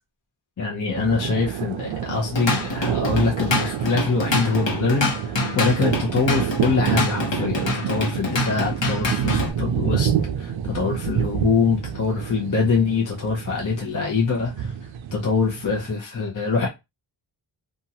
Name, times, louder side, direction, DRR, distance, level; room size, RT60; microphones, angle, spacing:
voice 1, 0.6-10.1 10.4-14.7 15.1-16.7, left 4 dB, 40° left, 0.8 m, -24 dB
sound 1, 1.0-16.0, right 8 dB, 70° right, 0.5 m, -28 dB
Drum kit / Drum, 2.1-9.5, left 2 dB, 60° left, 1.1 m, -26 dB
2.7 x 2.4 x 2.8 m
cardioid pair, 60°, 49 cm